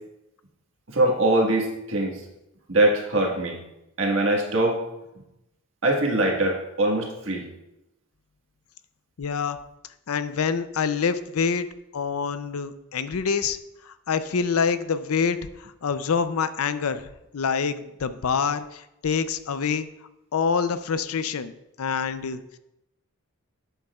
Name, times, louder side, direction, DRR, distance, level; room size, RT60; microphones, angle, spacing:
voice 1, 0.9-2.2 2.7-3.6 4.0-4.8 5.8-7.5, right 1 dB, 60° right, 0 dB, 1.6 m, -22 dB
voice 2, 9.2-9.6 10.1-11.7 11.9-13.6 13.9-15.4 15.8-17.0 17.3-19.9 20.3-21.5 21.8-22.4, left 6 dB, 90° left, 12 dB, 0.5 m, -26 dB
11.5 x 7.9 x 2.4 m, 0.90 s
head